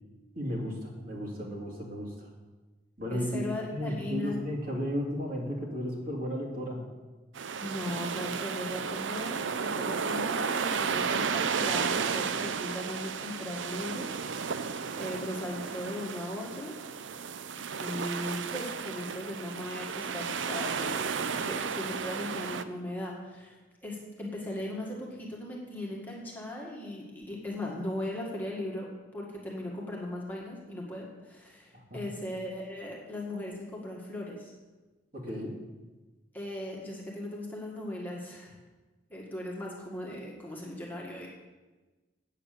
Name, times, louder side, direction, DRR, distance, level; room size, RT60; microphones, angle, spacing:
voice 1, 0.4-2.3 3.0-3.4 3.7-6.8 31.7-32.0 35.1-35.6, equal, 50° right, -1 dB, 2.4 m, -34 dB
voice 2, 3.1-4.4 7.6-16.8 17.8-23.6 23.8-34.5 36.3-38.6 39.1-41.3, left 1 dB, 10° left, -3 dB, 1.7 m, -38 dB
sound 1, 7.3-22.6, right 6 dB, 80° right, 0.6 m, -33 dB
8.7 x 8.5 x 6.7 m, 1.2 s
head